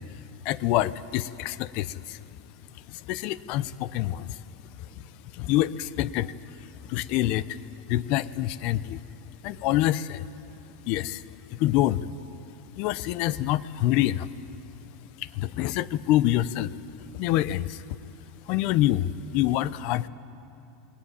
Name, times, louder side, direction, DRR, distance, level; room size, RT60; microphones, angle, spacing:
voice 1, 0.5-2.2 3.1-4.3 5.4-6.3 6.9-7.6 7.9-9.0 9.4-10.3 10.9-11.2 11.6-12.0 12.8-14.3 15.4-16.7 17.2-17.8 18.5-20.1, left 14 dB, 45° left, 18 dB, 0.6 m, -26 dB
20.0 x 17.5 x 9.7 m, 2.7 s
supercardioid pair, 160°, 3 cm